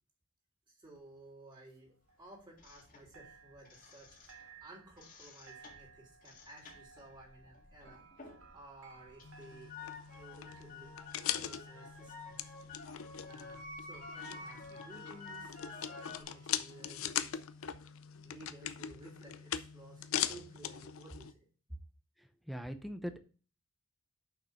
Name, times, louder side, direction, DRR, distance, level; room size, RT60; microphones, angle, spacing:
voice 1, 0.7-4.3 4.6-10.9 11.3-12.5 13.2-17.4 18.2-21.3, right 2 dB, 20° right, -3 dB, 3.4 m, -55 dB
sound 1, 0.9-2.9 3.1-17.0, right 5 dB, 75° right, 1.7 m, -61 dB
sound 2, 2.6-4.6 4.9-8.6 8.9-16.2, left 3 dB, 40° left, 1.9 m, -51 dB
sound 3, 9.2-21.3, left 10 dB, 75° left, 0.6 m, -41 dB
voice 2, 22.2-23.2, equal, ahead, 8 dB, 0.7 m, -41 dB
6.6 x 6.0 x 5.8 m, 0.39 s
head